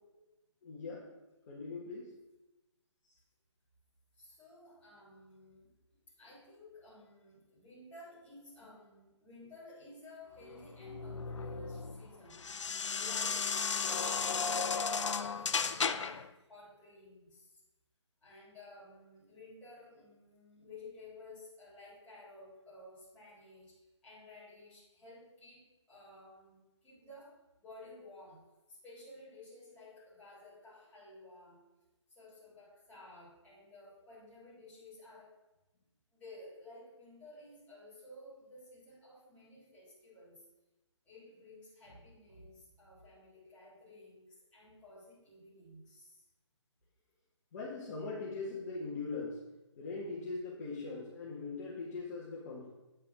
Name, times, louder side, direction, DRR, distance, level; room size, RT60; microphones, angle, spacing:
voice 1, 0.6-1.1 1.5-2.1 47.5-49.4 49.8-52.7, left 3 dB, 30° left, -6 dB, 1.8 m, -41 dB
voice 2, 4.1-5.7 6.1-12.7 13.0-16.2 16.5-17.6 18.2-23.8 24.0-31.6 32.1-35.3 36.1-40.5 41.0-46.3, left 2 dB, 10° left, -9 dB, 3.7 m, -54 dB
sound 1, 10.4-16.3, left 5 dB, 80° left, 0.7 m, -35 dB
8.6 x 5.9 x 6.1 m, 1.0 s
hypercardioid pair, 160°, 15 cm